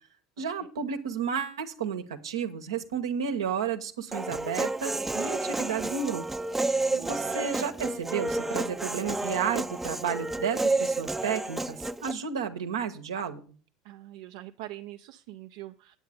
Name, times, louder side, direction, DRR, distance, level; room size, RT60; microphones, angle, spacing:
voice 1, 0.4-6.2 6.7-13.4, right 7 dB, 85° right, 7 dB, 1.0 m, -32 dB
Human voice, 4.1-12.1, right 2 dB, 10° right, 0.5 m, -30 dB
voice 2, 6.9-7.4 13.8-16.0, right 15 dB, 70° right, 5 dB, 0.5 m, -43 dB
9.0 x 8.5 x 5.0 m, 0.40 s
hypercardioid pair, 80°, 2 cm